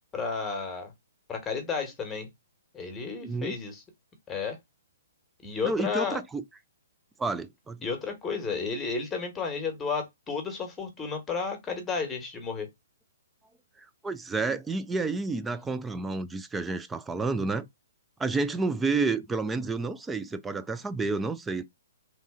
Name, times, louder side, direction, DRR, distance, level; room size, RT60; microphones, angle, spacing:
voice 1, 0.1-0.9 1.3-2.3 2.7-3.8 4.3-4.6 5.4-6.2 7.8-12.7, left 5 dB, 15° left, 1.2 m, -32 dB
voice 2, 3.2-3.6 5.6-6.4 7.2-7.9 13.8-17.7 18.2-21.6, right 3 dB, 10° right, 0.3 m, -30 dB
3.2 x 2.4 x 3.7 m
hypercardioid pair, 130°, 0 cm